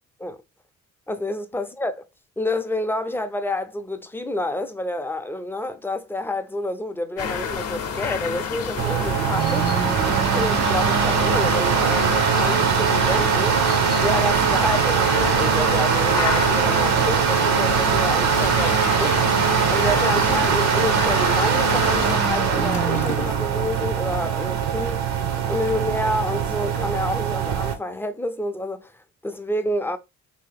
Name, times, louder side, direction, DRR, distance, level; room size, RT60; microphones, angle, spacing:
voice 1, 1.1-2.0 2.4-9.7 10.0-19.2 19.7-25.0 25.5-30.0, left 1 dB, 5° left, 0.5 m, -28 dB
sound 1, 7.2-22.2, left 6 dB, 55° left, 0.7 m, -30 dB
sound 2, 8.8-27.7, right 7 dB, 65° right, 0.7 m, -21 dB
Toilet flush, 17.6-23.6 23.9-24.2, left 5 dB, 90° left, 0.7 m, -37 dB
3.0 x 2.8 x 3.4 m
cardioid pair, 90°, 30 cm